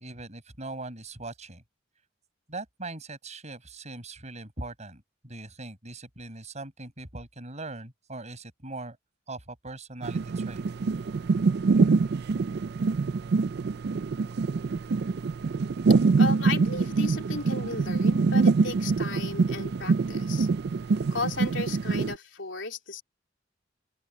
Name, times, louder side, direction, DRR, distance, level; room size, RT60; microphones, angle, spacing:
voice 1, 0.0-1.6 2.5-9.0 9.3-10.6 10.9-11.0, right 2 dB, 40° right, 6.9 m, -40 dB
sound 1, 10.0-22.1, right 4 dB, 60° right, 0.4 m, -25 dB
voice 2, 16.2-20.5 21.1-23.0, left 3 dB, 75° left, 3.7 m, -35 dB
open air
head